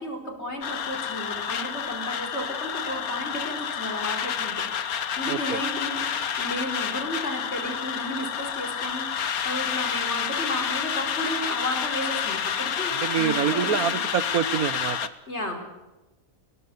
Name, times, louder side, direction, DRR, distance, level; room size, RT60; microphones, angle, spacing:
voice 1, 0.0-6.0 6.4-14.0 15.3-15.7, equal, 50° left, 5 dB, 4.9 m, -33 dB
sound 1, 0.6-15.1, left 8 dB, 90° left, 1.7 m, -29 dB
voice 2, 5.3-5.6 12.9-15.1, right 9 dB, 85° right, 17 dB, 1.4 m, -26 dB
21.0 x 21.0 x 8.2 m, 1.1 s
omnidirectional pair, 1.5 m